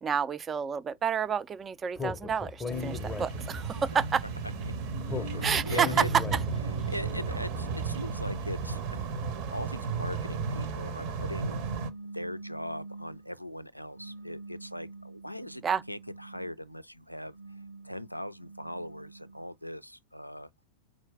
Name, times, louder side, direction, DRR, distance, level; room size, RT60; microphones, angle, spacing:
voice 1, 0.0-4.2 5.4-5.9 6.3-6.4 15.6-15.8, right 7 dB, 20° right, 0.4 m, -30 dB
Speech, 2.0-3.8 5.1-6.8, left 4 dB, 10° left, 0.7 m, -36 dB
sound 1, 2.7-11.9, right 5 dB, 45° right, 0.7 m, -34 dB
voice 2, 5.1-6.1 6.6-9.1 9.5-11.6 12.1-15.6 15.9-20.5, equal, 90° left, 0.3 m, -40 dB
sound 2, 11.3-13.3 13.9-16.6 17.2-19.5, right 3 dB, 80° right, 1.0 m, -46 dB
4.4 x 2.4 x 4.7 m
figure-of-eight pair, 90°, 0 cm